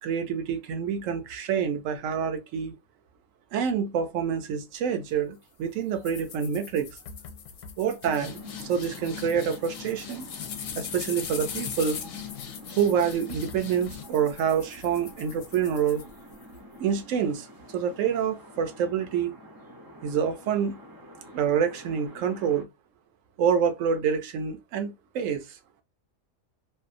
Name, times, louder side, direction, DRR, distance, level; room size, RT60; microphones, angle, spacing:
voice 1, 0.0-2.8 3.5-7.0 7.8-10.3 10.8-12.0 12.7-16.0 16.8-17.5 17.7-19.3 20.0-20.8 21.3-22.7 23.4-25.6, right 7 dB, 75° right, 1.0 m, -27 dB
sound 1, 6.0-16.6, left 8 dB, 70° left, 0.9 m, -40 dB
sound 2, 8.2-22.6, equal, 30° right, 0.4 m, -49 dB
2.7 x 2.1 x 2.5 m
omnidirectional pair, 1.4 m